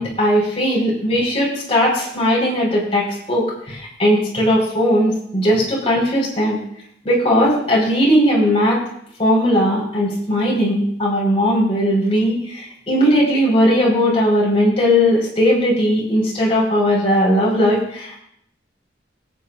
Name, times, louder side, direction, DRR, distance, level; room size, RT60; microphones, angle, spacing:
voice 1, 0.0-6.6 7.0-8.8 9.2-18.2, equal, 35° left, -3 dB, 4.5 m, -18 dB
22.5 x 9.3 x 2.5 m, 0.69 s
head